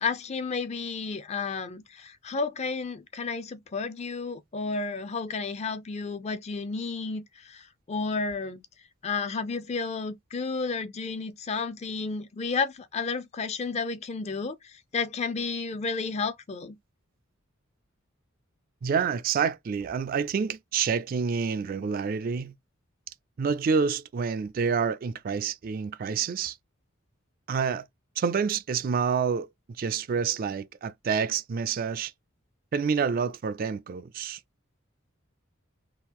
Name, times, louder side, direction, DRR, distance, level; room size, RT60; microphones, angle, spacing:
voice 1, 0.0-8.6 9.0-16.8, left 4 dB, 30° left, 0.4 m, -32 dB
voice 2, 18.8-22.5 23.4-26.6 27.5-27.8 28.2-29.5 29.8-32.1 32.7-34.4, right 6 dB, 45° right, 0.3 m, -28 dB
3.7 x 2.4 x 2.9 m
head